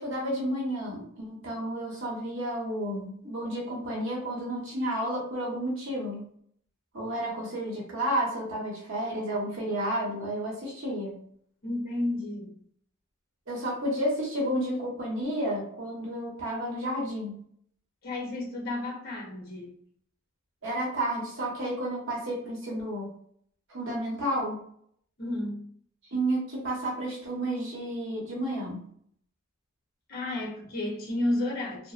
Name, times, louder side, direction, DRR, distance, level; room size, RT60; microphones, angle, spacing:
voice 1, 0.0-6.2 6.9-11.2 13.5-17.3 20.6-23.1 23.7-24.6 26.1-28.8, right 1 dB, 65° right, 0.9 m, -31 dB
voice 2, 11.6-12.5 18.0-19.7 25.2-25.7 30.1-31.9, left 1 dB, 45° left, 0.8 m, -32 dB
2.8 x 2.0 x 2.4 m
head